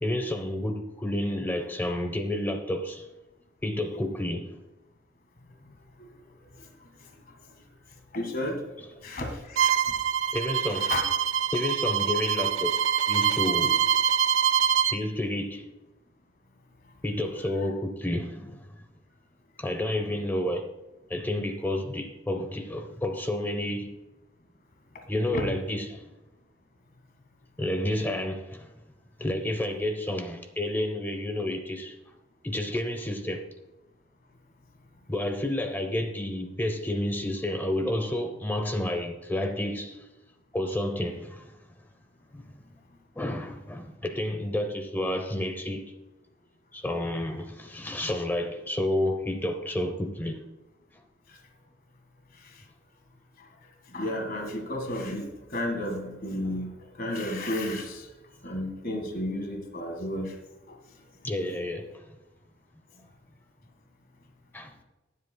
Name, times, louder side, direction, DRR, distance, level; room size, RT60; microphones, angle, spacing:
voice 1, 0.0-3.1 3.6-4.6 10.3-10.9 11.5-13.9 14.9-15.7 17.0-18.7 19.6-20.7 21.1-24.0 25.1-26.1 27.6-28.7 29.2-32.0 32.4-33.5 35.1-40.0 40.5-41.5 42.3-42.6 43.2-45.8 46.7-50.4 61.2-62.1 64.5-64.7, left 1 dB, 10° left, 0.6 m, -30 dB
voice 2, 6.0-7.5 8.1-8.6 9.0-10.0 10.7-11.0 13.6-13.7 25.3-25.5 51.3-51.4 52.3-52.6 53.4-58.1 58.4-60.4 60.7-60.8, left 1 dB, 50° left, 1.7 m, -33 dB
Bowed string instrument, 9.6-15.0, right 8 dB, 90° right, 0.4 m, -25 dB
19.0 x 7.8 x 2.2 m
head